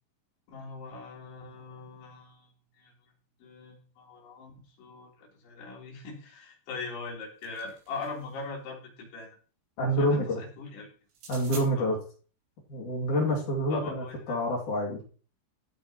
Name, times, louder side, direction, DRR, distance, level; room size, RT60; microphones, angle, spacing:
voice 1, 0.5-3.1 3.4-9.4 10.0-10.9 11.8-11.9 13.7-14.4, left 3 dB, 70° left, -2 dB, 5.9 m, -41 dB
sound 1, 7.1-8.4 11.1-11.7, right 4 dB, 75° right, 6.3 m, -46 dB
voice 2, 9.8-10.4 11.3-12.0 12.7-15.1, equal, 45° left, -2 dB, 3.4 m, -27 dB
15.5 x 8.7 x 3.0 m, 0.39 s
omnidirectional pair, 5.5 m